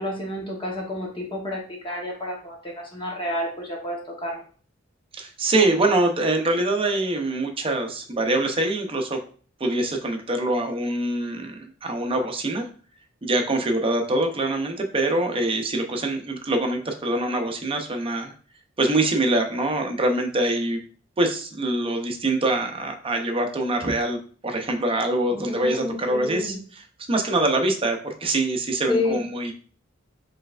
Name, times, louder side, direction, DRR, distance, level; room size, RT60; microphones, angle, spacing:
voice 1, 0.0-4.4 25.3-26.6 28.9-29.2, left 1 dB, 25° left, -2 dB, 1.0 m, -30 dB
voice 2, 5.1-9.2 9.6-12.7 13.2-18.3 18.8-20.8 21.2-24.2 24.4-26.8 27.1-29.5, right 2 dB, 30° right, 4 dB, 0.6 m, -24 dB
4.4 x 3.3 x 2.4 m, 0.42 s
head